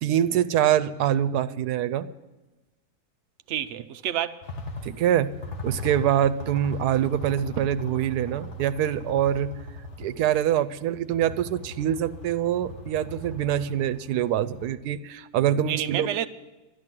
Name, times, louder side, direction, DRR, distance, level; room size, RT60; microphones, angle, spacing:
voice 1, 0.0-2.1 4.8-5.3 5.6-9.5 10.0-16.1, right 10 dB, 85° right, 1.2 m, -24 dB
voice 2, 3.5-4.5 15.7-16.3, right 11 dB, 65° right, 0.7 m, -29 dB
sound 1, 4.4-14.7, left 1 dB, 50° left, 1.4 m, -39 dB
12.0 x 11.0 x 7.5 m
omnidirectional pair, 1.6 m